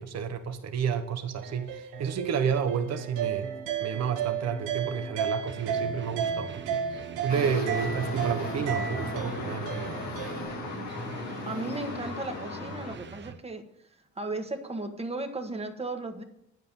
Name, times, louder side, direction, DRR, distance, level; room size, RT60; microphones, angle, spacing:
voice 1, 0.0-3.5 3.8-10.0, right 7 dB, 60° right, 7 dB, 1.2 m, -31 dB
sound 1, 1.4-10.4, right 7 dB, 90° right, 1.2 m, -34 dB
sound 2, 5.5-13.4, right 6 dB, 40° right, 0.7 m, -43 dB
sound 3, 7.3-12.9, left 3 dB, 65° left, 1.9 m, -36 dB
voice 2, 11.5-13.6 14.2-16.2, right 2 dB, 20° right, 5 dB, 1.5 m, -35 dB
9.3 x 7.8 x 5.5 m, 0.80 s
cardioid pair, 90°, 30 cm